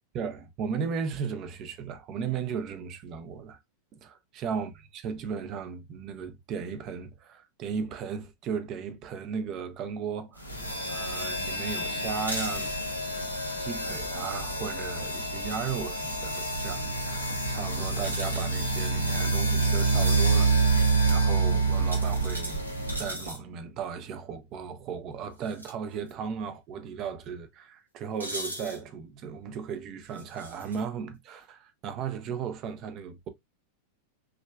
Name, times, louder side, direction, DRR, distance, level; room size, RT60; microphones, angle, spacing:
voice 1, 0.1-3.6 3.9-12.7 13.5-22.6 23.0-33.3, right 6 dB, 35° right, 0.9 m, -36 dB
sound 1, 10.4-23.3, right 3 dB, 90° left, 1.1 m, -27 dB
sound 2, 12.2-12.7 15.3-15.6 18.0-18.6 19.3-19.7 21.9-23.4 25.4-25.7 26.1-26.2 28.2-28.8 30.1-30.8, equal, 85° right, 1.3 m, -39 dB
6.1 x 3.3 x 2.3 m
figure-of-eight pair, 90°, 0 cm